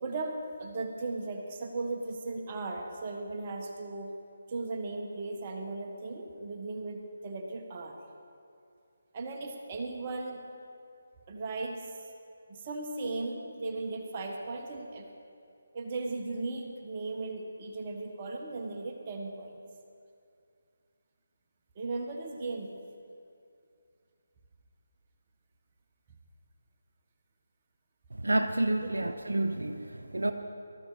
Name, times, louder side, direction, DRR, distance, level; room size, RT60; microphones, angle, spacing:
voice 1, 0.0-4.1 4.5-8.0 9.1-10.4 11.3-11.9 12.5-15.1 15.7-19.6 21.7-22.7 28.8-28.9, right 3 dB, 35° right, 1.5 m, -37 dB
voice 2, 28.2-30.3, right 1 dB, 80° right, 0.8 m, -29 dB
19.0 x 13.5 x 5.1 m
figure-of-eight pair, 150°, 0 cm